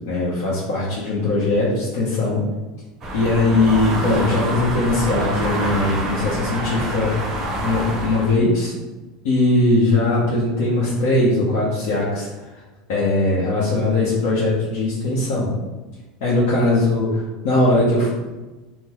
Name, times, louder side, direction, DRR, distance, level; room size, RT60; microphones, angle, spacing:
voice 1, 0.1-2.4 3.1-7.1 7.6-8.7 9.2-12.5 12.9-15.5 16.2-18.1, left 2 dB, 70° left, -7 dB, 0.7 m, -20 dB
sound 1, 3.0-8.3, right 1 dB, 30° right, 0.7 m, -26 dB
3.7 x 2.0 x 2.9 m, 1.2 s
supercardioid pair, 140°, 0 cm